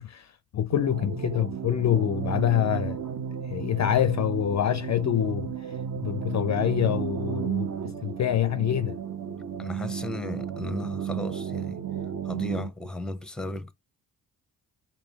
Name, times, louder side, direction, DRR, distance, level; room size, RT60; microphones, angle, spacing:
voice 1, 0.0-3.0 3.4-9.0, left 11 dB, 40° left, 0.4 m, -26 dB
sound 1, 0.7-12.7, right 8 dB, 45° right, 0.9 m, -33 dB
voice 2, 9.6-11.8 12.2-13.7, left 1 dB, ahead, 0.7 m, -35 dB
4.9 x 2.4 x 3.5 m
hypercardioid pair, 45°, 46 cm